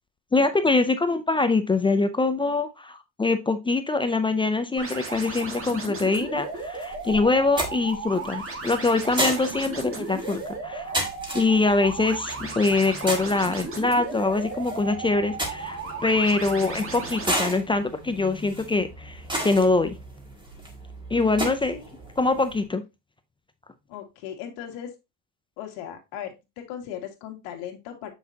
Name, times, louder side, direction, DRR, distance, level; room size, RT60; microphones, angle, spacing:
voice 1, 0.3-11.0 11.3-20.0 21.1-21.8 22.2-22.8, left 3 dB, 15° left, 0.3 m, -24 dB
sound 1, 4.8-17.4, right 4 dB, 30° right, 1.8 m, -35 dB
sound 2, 5.9-22.7, right 1 dB, 10° right, 1.7 m, -35 dB
voice 2, 21.2-21.9 23.9-24.9 25.6-28.1, left 9 dB, 85° left, 2.1 m, -38 dB
7.2 x 5.8 x 2.8 m
cardioid pair, 140°, 44 cm